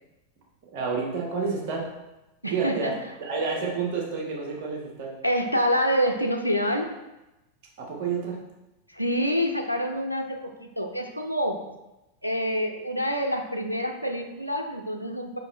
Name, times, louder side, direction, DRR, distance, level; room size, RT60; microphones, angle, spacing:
voice 1, 0.7-1.9 2.5-2.9 3.2-5.1 7.8-8.4, right 5 dB, 45° right, -1 dB, 1.8 m, -29 dB
voice 2, 2.4-2.9 5.2-6.9 8.9-11.6 12.2-15.4, equal, 90° right, 3 dB, 0.6 m, -27 dB
5.4 x 5.2 x 4.2 m, 0.98 s
figure-of-eight pair, 90°, 0 cm